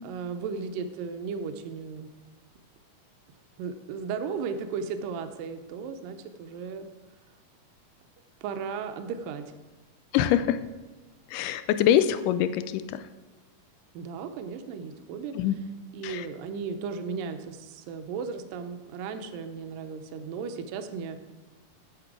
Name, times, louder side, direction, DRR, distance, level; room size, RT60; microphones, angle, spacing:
voice 1, 0.0-2.1 3.6-6.9 8.4-9.5 13.9-15.3 15.9-21.2, right 5 dB, 80° right, 8 dB, 2.4 m, -35 dB
voice 2, 10.1-10.6 11.3-13.0 15.4-15.6 16.0-16.3, left 11 dB, 80° left, 12 dB, 2.0 m, -24 dB
8.7 x 8.3 x 4.7 m, 1.3 s
omnidirectional pair, 4.0 m